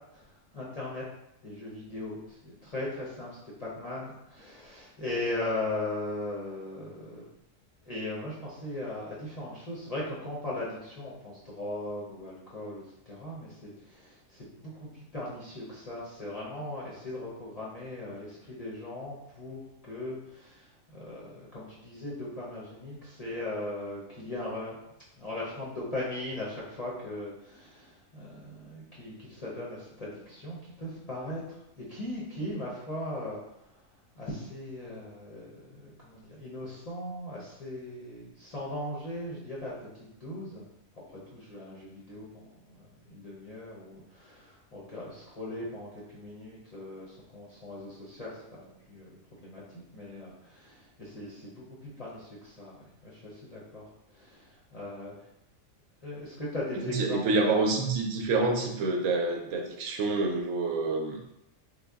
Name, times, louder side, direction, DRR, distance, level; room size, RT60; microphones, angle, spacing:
voice 1, 0.1-1.0 1.4-7.3 7.8-24.8 25.2-31.4 31.8-33.4 34.2-40.7 41.1-55.2 56.0-57.5, left 1 dB, 40° left, -6 dB, 0.6 m, -39 dB
voice 2, 56.8-61.2, right 3 dB, 80° right, 2 dB, 1.0 m, -27 dB
3.4 x 2.1 x 3.4 m, 0.83 s
omnidirectional pair, 1.4 m